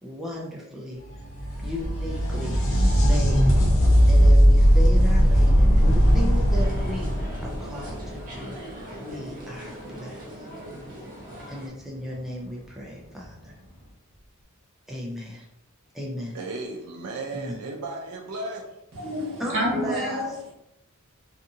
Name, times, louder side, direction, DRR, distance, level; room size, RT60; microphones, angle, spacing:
voice 1, 0.0-1.0 1.6-3.5 4.1-8.6 9.0-10.5 11.5-13.5 14.9-15.5 15.9-16.4 17.3-17.6 19.4-20.2, left 1 dB, ahead, -4 dB, 0.4 m, -35 dB
sound 1, 1.1-8.7 12.1-12.2 13.2-13.3, equal, 60° left, 0.8 m, -19 dB
sound 2, 6.5-11.7, equal, 40° right, 0.8 m, -40 dB
voice 2, 16.3-18.7, right 2 dB, 80° right, 1 dB, 0.4 m, -35 dB
voice 3, 18.9-20.3, equal, 60° right, -3 dB, 1.0 m, -28 dB
2.6 x 2.4 x 2.7 m, 0.87 s
head